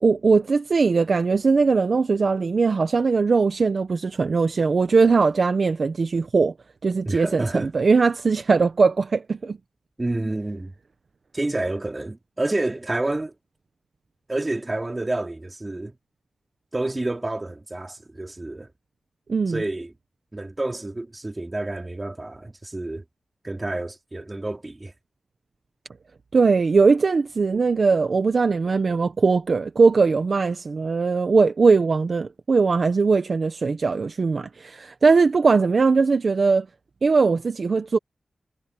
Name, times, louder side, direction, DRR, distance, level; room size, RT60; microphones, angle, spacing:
voice 1, 0.0-6.5 6.8-9.6 19.3-19.6 26.3-36.7 37.0-38.0, right 4 dB, 45° right, 0.8 m, -20 dB
voice 2, 7.0-7.7 10.0-10.7 11.3-13.3 14.3-16.0 16.7-18.7 19.5-19.9 20.3-23.0 23.4-24.9, right 2 dB, 20° right, 2.9 m, -29 dB
wide cardioid pair, 165°, 0 cm